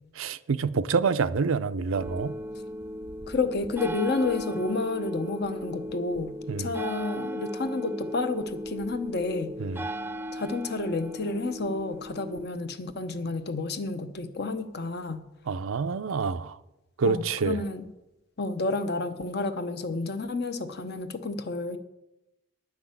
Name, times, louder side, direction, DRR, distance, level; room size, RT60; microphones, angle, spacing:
voice 1, 0.2-2.3 6.5-6.7 9.6-9.8 15.5-16.6 17.0-17.6, right 5 dB, 85° right, 0.5 m, -27 dB
sound 1, 1.9-12.5, equal, 10° right, 0.3 m, -37 dB
voice 2, 3.3-9.5 10.3-15.2 17.0-17.9 18.4-21.8, left 3 dB, 50° left, 0.8 m, -30 dB
10.0 x 6.0 x 8.7 m
head